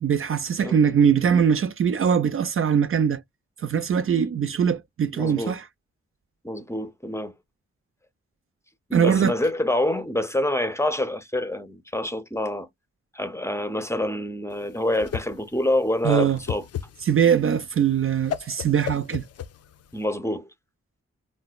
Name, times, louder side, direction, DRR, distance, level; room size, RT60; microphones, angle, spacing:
voice 1, 0.0-3.2 3.6-5.7 8.9-9.3 16.0-16.4 17.0-19.2, right 7 dB, 50° right, 0.4 m, -21 dB
voice 2, 5.1-5.6 6.4-7.3 8.9-12.7 13.1-16.6 19.9-20.5, left 1 dB, 10° left, 0.6 m, -26 dB
Whoosh swoosh swish, 14.5-20.0, left 10 dB, 55° left, 0.4 m, -35 dB
4.0 x 2.1 x 2.3 m
cardioid pair, 50°, 29 cm